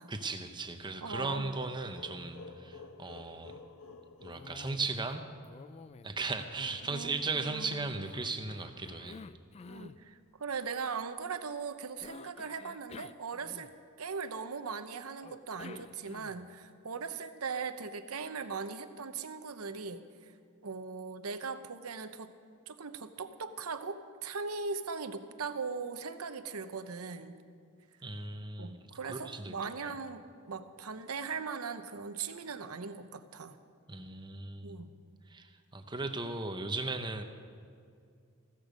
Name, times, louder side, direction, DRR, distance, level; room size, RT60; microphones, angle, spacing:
voice 1, 0.1-3.6 4.2-5.2 6.0-9.2 28.0-29.5 33.9-34.8 35.3-37.2, right 3 dB, 20° right, 7 dB, 0.9 m, -37 dB
voice 2, 1.0-1.5 6.9-8.0 9.7-13.7 14.0-20.3 20.6-22.3 22.7-27.3 28.6-33.6 34.6-34.9, right 5 dB, 80° right, 10 dB, 0.9 m, -39 dB
sound 1, 1.6-5.3, left 3 dB, 75° left, 1.0 m, -51 dB
Cough, 4.3-5.2 5.4-7.5 8.0-10.0 12.0-14.0 15.2-16.5, left 4 dB, 30° left, 0.3 m, -51 dB
15.5 x 13.5 x 5.2 m, 2.3 s
head